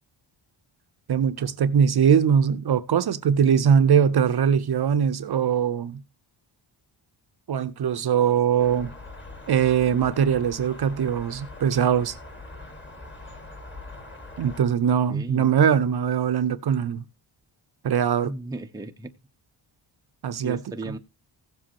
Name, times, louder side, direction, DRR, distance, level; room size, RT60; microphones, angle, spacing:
voice 1, 1.1-6.0 7.5-8.9 9.5-12.2 14.4-17.0 17.8-18.3 20.2-20.6, right 8 dB, 50° right, 0.7 m, -21 dB
sound 1, 8.6-14.6, left 2 dB, 20° left, 2.0 m, -42 dB
voice 2, 15.1-15.5 18.2-19.1 20.4-21.0, right 2 dB, 10° right, 0.6 m, -35 dB
16.0 x 7.5 x 2.9 m
wide cardioid pair, 125°, 49 cm